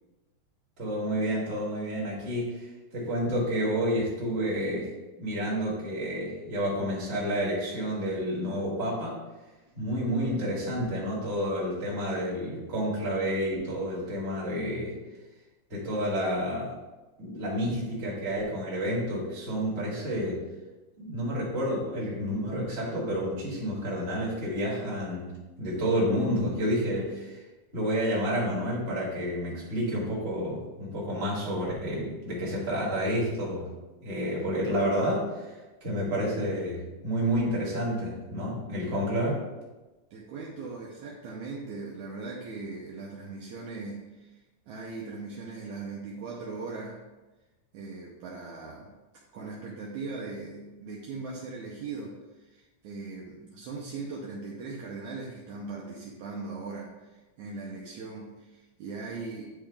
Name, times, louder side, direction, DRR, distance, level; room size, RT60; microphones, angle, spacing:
voice 1, 0.8-2.7 2.9-4.9 5.2-9.2 9.8-14.9 15.7-16.7 17.2-20.4 21.0-25.3 25.6-27.4 27.7-33.7 34.0-35.5 35.8-39.4, equal, 20° right, -7 dB, 1.8 m, -29 dB
voice 2, 40.1-44.4 44.7-47.0 47.7-48.9 49.3-59.5, right 3 dB, 75° right, -3 dB, 2.0 m, -39 dB
10.0 x 3.4 x 3.4 m, 1.1 s
omnidirectional pair, 3.9 m